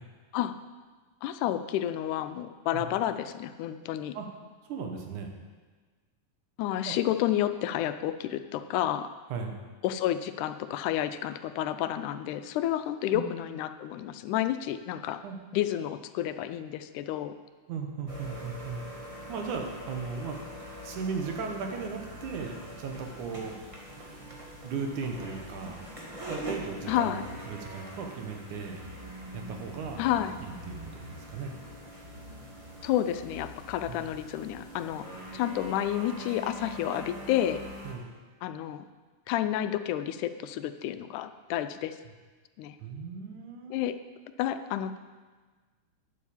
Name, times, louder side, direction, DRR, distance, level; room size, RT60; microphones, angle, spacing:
voice 1, 1.2-4.2 6.6-9.1 9.8-15.2 15.5-17.3 26.9-27.2 30.0-30.3 32.8-35.1 35.3-37.6 38.4-38.8 39.3-42.0 42.6-42.8 43.7-44.0 44.4-45.0, left 12 dB, 85° left, 11 dB, 2.1 m, -30 dB
voice 2, 4.7-5.3 6.9-7.0 9.3-9.5 13.1-13.3 15.2-15.4 17.7-18.8 19.3-20.4 20.8-23.6 24.6-25.8 26.3-27.2 27.5-28.8 29.3-30.0 30.4-31.5 33.9-34.0 37.8-38.1 42.8-43.8, right 5 dB, 80° right, 3 dB, 2.8 m, -36 dB
sound 1, 18.1-37.9, equal, 15° right, 1.2 m, -43 dB
9.5 x 8.3 x 7.2 m, 1.4 s
omnidirectional pair, 3.5 m